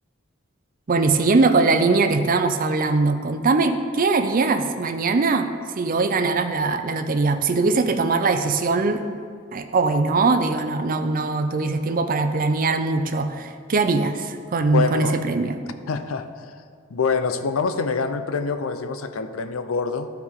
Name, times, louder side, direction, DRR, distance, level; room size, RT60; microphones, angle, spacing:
voice 1, 0.9-5.5 5.8-9.1 9.5-15.6, right 3 dB, 45° right, 7 dB, 0.5 m, -21 dB
voice 2, 14.7-15.2 15.9-16.5 16.9-20.1, left 5 dB, 85° left, 10 dB, 0.5 m, -25 dB
12.0 x 4.6 x 3.7 m, 2.2 s
head